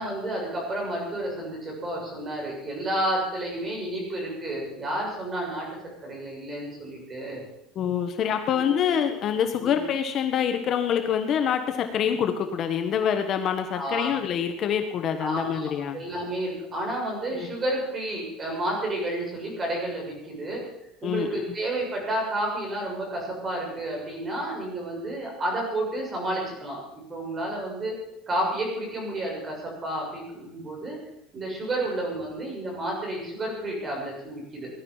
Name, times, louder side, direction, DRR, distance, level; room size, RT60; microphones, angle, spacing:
voice 1, 0.0-5.7 6.0-7.4 8.5-9.0 9.6-9.8 13.7-14.2 15.2-20.6 21.0-26.8 27.1-27.9 28.3-31.0 31.3-34.7, right 1 dB, 20° right, -1 dB, 7.1 m, -31 dB
voice 2, 7.7-16.0 17.3-17.5 21.0-21.5, left 8 dB, 40° left, 6 dB, 1.2 m, -26 dB
19.0 x 12.0 x 5.6 m, 0.86 s
cardioid pair, 155°, 0 cm